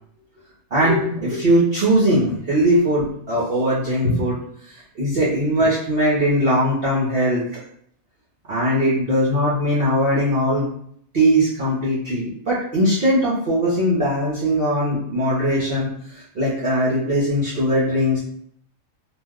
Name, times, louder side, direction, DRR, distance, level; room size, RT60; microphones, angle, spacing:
voice 1, 0.7-4.4 4.7-7.6 8.5-10.7 11.1-18.2, equal, 50° right, -7 dB, 0.8 m, -20 dB
2.6 x 2.0 x 3.5 m, 0.65 s
omnidirectional pair, 1.4 m